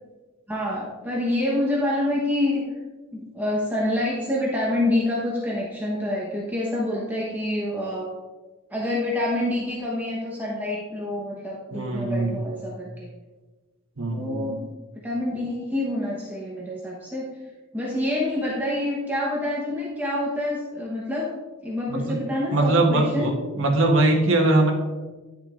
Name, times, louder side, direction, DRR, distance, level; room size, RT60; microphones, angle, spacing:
voice 1, 0.5-2.6 3.1-8.1 8.7-13.1 14.1-14.6 15.0-17.3 17.7-21.3 21.6-23.3, left 1 dB, 10° right, -5 dB, 1.0 m, -27 dB
voice 2, 11.7-12.4 14.0-14.7 21.9-22.2 22.5-24.7, right 2 dB, 60° right, 2 dB, 1.2 m, -22 dB
10.0 x 6.3 x 2.5 m, 1.2 s
head